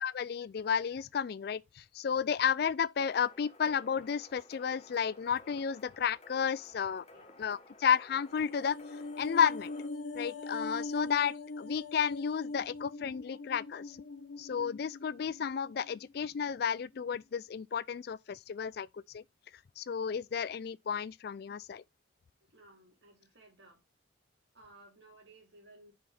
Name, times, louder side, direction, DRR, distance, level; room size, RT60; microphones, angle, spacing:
voice 1, 0.0-7.0 7.4-8.8 9.2-9.7 10.1-14.0 14.4-18.9 19.1-19.2 19.8-21.8, left 7 dB, 50° left, 0.3 m, -32 dB
sound 1, 3.0-9.9, left 2 dB, 30° left, 1.0 m, -56 dB
sound 2, 8.2-16.6 16.9-17.1, left 3 dB, 65° left, 1.1 m, -42 dB
voice 2, 22.5-23.8 24.5-25.9, right 2 dB, 60° right, 2.8 m, -58 dB
5.6 x 5.1 x 4.2 m
head